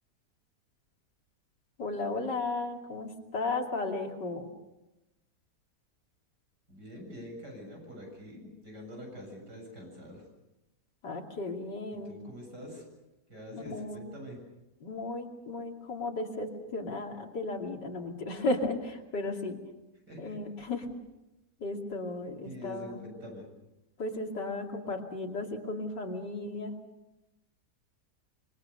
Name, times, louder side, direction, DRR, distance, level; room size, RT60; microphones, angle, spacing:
voice 1, 1.8-4.5 11.0-12.2 13.5-14.0 14.8-19.6 20.2-20.9 21.6-23.0 24.0-26.7, left 2 dB, 90° left, 2 dB, 3.3 m, -35 dB
voice 2, 6.7-10.2 11.9-12.8 13.3-14.4 20.1-20.4 22.4-23.5, equal, 75° right, 1 dB, 8.1 m, -45 dB
26.0 x 23.5 x 6.8 m, 0.97 s
omnidirectional pair, 1.8 m